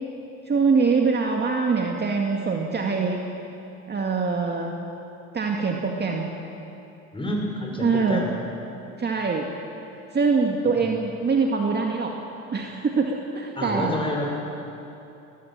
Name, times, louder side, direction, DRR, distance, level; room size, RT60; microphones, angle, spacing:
voice 1, 0.5-3.3 3.9-4.7 5.3-6.3 7.8-8.3 9.0-9.5 10.1-12.1 12.5-14.0, right 4 dB, 25° right, 1 dB, 2.1 m, -23 dB
voice 2, 7.1-8.3 13.6-14.3, left 1 dB, 15° left, 0 dB, 6.1 m, -28 dB
21.5 x 20.0 x 7.5 m, 2.9 s
hypercardioid pair, 80°, 39 cm